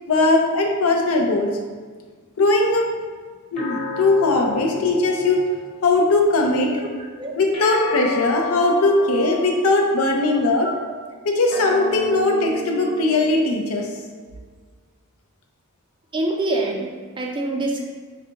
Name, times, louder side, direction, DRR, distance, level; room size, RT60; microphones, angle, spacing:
voice 1, 0.1-1.5 2.4-2.8 3.5-5.4 5.8-6.8 7.4-10.7 11.2-13.9, left 2 dB, 80° left, 1 dB, 0.5 m, -19 dB
sound 1, 3.6-6.1 7.5-10.1 11.5-14.1, left 2 dB, 30° left, 1.1 m, -33 dB
voice 2, 7.0-7.3 9.0-9.1 12.8-12.9 16.1-17.8, right 2 dB, 20° right, 0 dB, 0.4 m, -26 dB
4.8 x 2.3 x 2.9 m, 1.5 s
head